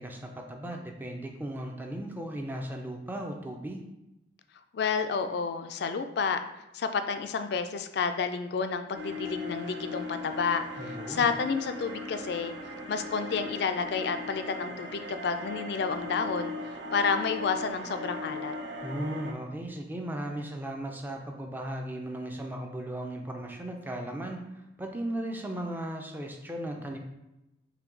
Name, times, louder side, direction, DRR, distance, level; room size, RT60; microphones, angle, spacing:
voice 1, 0.0-3.9 10.8-11.3 18.8-24.4 24.8-27.0, right 1 dB, 10° right, 2 dB, 0.4 m, -36 dB
voice 2, 4.7-6.4 6.7-12.5 12.9-16.5 16.9-18.5, left 5 dB, 60° left, 9 dB, 0.3 m, -30 dB
sound 1, 8.9-19.3, left 2 dB, 65° right, 0.6 m, -38 dB
5.7 x 2.2 x 3.8 m, 0.93 s
head